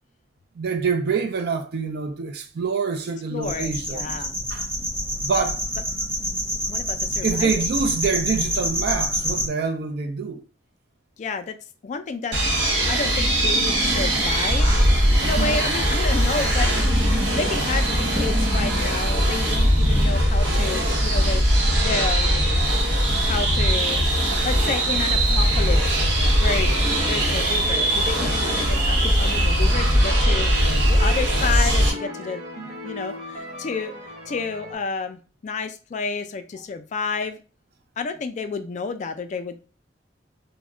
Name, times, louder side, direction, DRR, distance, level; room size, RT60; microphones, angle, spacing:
voice 1, 0.6-4.2 4.5-4.9 5.2-5.6 7.2-10.4 15.4-15.6 32.6-32.7, right 5 dB, 60° right, 0.4 m, -26 dB
voice 2, 3.3-4.4 6.7-7.5 11.2-11.6 11.8-12.4 12.9-14.8 15.2-21.4 21.8-22.3 23.2-24.0 24.4-26.7 27.1-32.4 32.8-33.9 34.3-37.4 38.0-39.6, left 4 dB, 40° left, 0.3 m, -30 dB
sound 1, 3.4-9.5, equal, 10° right, 0.8 m, -27 dB
sound 2, 12.3-31.9, equal, 80° right, 0.9 m, -20 dB
sound 3, 26.2-34.8, left 1 dB, 35° right, 0.9 m, -37 dB
2.2 x 2.1 x 3.6 m
head